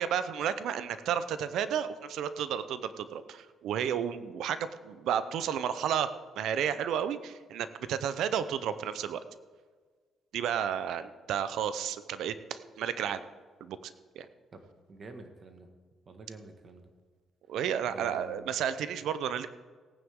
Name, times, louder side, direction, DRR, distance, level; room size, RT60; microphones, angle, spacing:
voice 1, 0.0-9.2 10.3-13.2 13.6-14.3 17.5-19.5, right 9 dB, 80° right, 13 dB, 0.7 m, -32 dB
voice 2, 14.9-15.7 16.0-16.9 17.8-18.5, right 2 dB, 45° right, 5 dB, 1.7 m, -47 dB
18.0 x 9.4 x 3.7 m, 1.5 s
cardioid pair, 90°, 0 cm